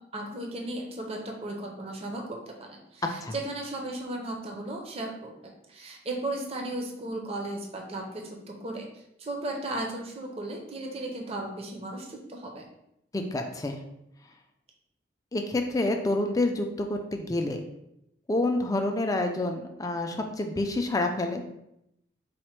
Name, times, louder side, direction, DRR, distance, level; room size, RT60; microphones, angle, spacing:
voice 1, 0.1-12.6, right 1 dB, 30° right, 1 dB, 0.6 m, -36 dB
voice 2, 13.1-13.8 15.3-17.6 18.3-21.4, left 2 dB, 20° left, 4 dB, 0.3 m, -28 dB
4.2 x 2.1 x 4.4 m, 0.80 s
head